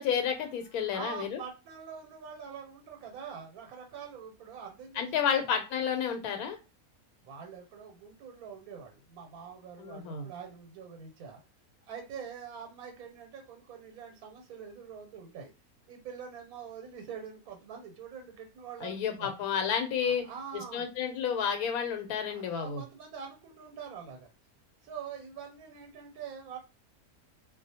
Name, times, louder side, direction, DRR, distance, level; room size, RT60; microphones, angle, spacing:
voice 1, 0.0-1.4 5.0-6.6 9.8-10.3 18.8-20.3 20.5-22.8, left 7 dB, 85° left, 6 dB, 1.1 m, -31 dB
voice 2, 0.8-5.4 7.2-11.4 11.9-15.5 15.9-19.3 20.0-20.9 22.3-24.3 24.8-26.6, right 7 dB, 90° right, 3 dB, 1.1 m, -45 dB
2.3 x 2.1 x 2.7 m, 0.29 s
omnidirectional pair, 1.5 m